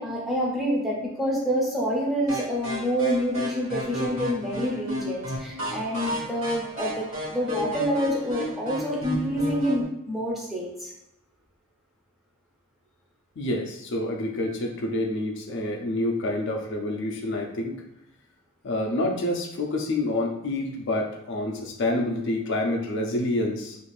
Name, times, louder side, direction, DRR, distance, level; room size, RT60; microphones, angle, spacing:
voice 1, 0.0-10.9, equal, ahead, -5 dB, 0.5 m, -27 dB
sound 1, 2.3-9.8, equal, 70° right, 1.3 m, -32 dB
voice 2, 13.4-17.8 18.6-23.8, left 1 dB, 55° left, 1 dB, 0.4 m, -28 dB
2.5 x 2.4 x 3.1 m, 0.84 s
head